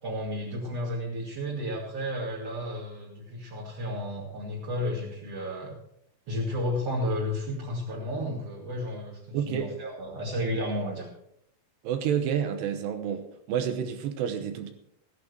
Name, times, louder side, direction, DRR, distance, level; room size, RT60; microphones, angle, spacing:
voice 1, 0.0-5.7 6.3-11.1, left 1 dB, 40° right, -5 dB, 2.9 m, -32 dB
voice 2, 9.3-9.7 11.8-14.7, right 8 dB, 75° right, 8 dB, 3.0 m, -29 dB
15.0 x 11.0 x 4.6 m, 0.73 s
omnidirectional pair, 5.4 m